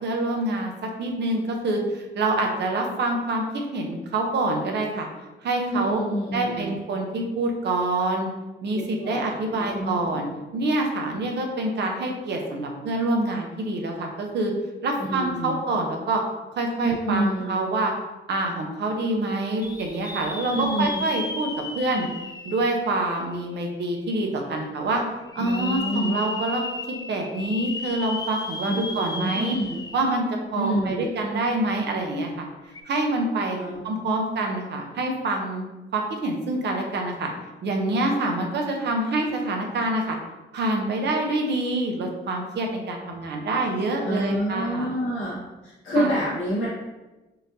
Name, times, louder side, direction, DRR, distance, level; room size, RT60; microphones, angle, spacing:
voice 1, 0.0-5.1 5.4-6.0 6.3-8.3 8.6-10.3 10.5-14.5 14.8-16.2 16.5-17.9 18.3-21.5 21.7-22.1 22.4-25.0 25.3-29.6 29.9-30.3 30.5-32.4 32.8-33.6 33.8-35.6 35.9-37.3 37.6-40.2 40.5-44.9 46.0-46.1, right 2 dB, 60° right, 2 dB, 0.9 m, -26 dB
voice 2, 5.7-6.8 8.7-10.2 15.1-15.6 16.8-17.6 20.5-21.0 25.4-26.2 28.6-29.8 30.5-31.1 33.5-33.8 44.0-45.4 45.6-46.7, right 1 dB, 80° left, -10 dB, 1.4 m, -28 dB
sound 1, 19.6-23.6 24.1-24.2 25.3-30.2 30.6-30.7 32.6-32.8, left 3 dB, 20° left, 0.4 m, -35 dB
5.5 x 2.7 x 2.7 m, 1.1 s
cardioid pair, 90°, 20 cm